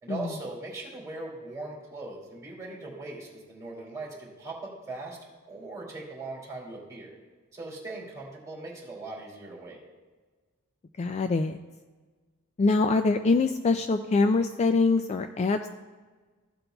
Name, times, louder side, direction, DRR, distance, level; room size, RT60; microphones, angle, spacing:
voice 1, 0.0-5.2 5.4-7.1 7.5-9.8, right 2 dB, 15° right, -3 dB, 2.8 m, -40 dB
voice 2, 11.0-11.6 12.6-15.7, left 3 dB, 30° left, 8 dB, 0.3 m, -24 dB
15.5 x 7.8 x 2.3 m, 1.4 s
head